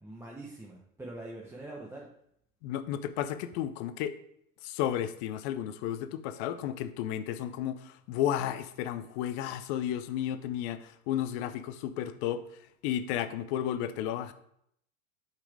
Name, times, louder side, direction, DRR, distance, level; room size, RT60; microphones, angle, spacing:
voice 1, 0.0-2.1, right 2 dB, 5° right, -4 dB, 0.8 m, -44 dB
voice 2, 2.6-4.2 4.6-12.4 12.8-14.3, left 10 dB, 50° left, 12 dB, 0.6 m, -33 dB
6.0 x 4.3 x 4.8 m, 0.72 s
hypercardioid pair, 100°, 43 cm